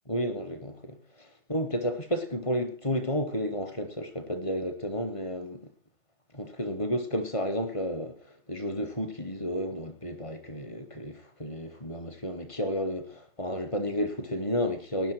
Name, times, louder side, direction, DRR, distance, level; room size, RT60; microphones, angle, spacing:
voice 1, 0.1-5.7 6.3-15.1, equal, 5° left, 0.6 m, -32 dB
18.5 x 10.5 x 4.6 m
hypercardioid pair, 165°, 39 cm